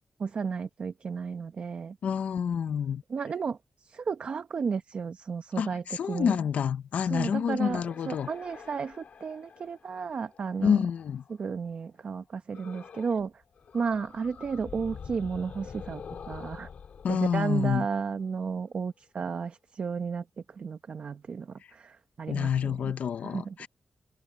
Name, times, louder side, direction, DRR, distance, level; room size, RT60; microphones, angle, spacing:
voice 1, 0.2-2.0 3.1-6.4 7.0-10.8 11.3-13.4 13.7-16.7 17.1-22.9 23.2-23.7, right 5 dB, 60° right, 1.0 m, -33 dB
voice 2, 2.0-3.0 5.6-8.3 10.6-11.2 17.0-17.9 22.3-23.7, left 7 dB, 85° left, 1.0 m, -28 dB
sound 1, 7.6-11.4 12.5-13.3 13.6-18.4, left 6 dB, 70° left, 4.7 m, -46 dB
wide cardioid pair, 105°, 2 cm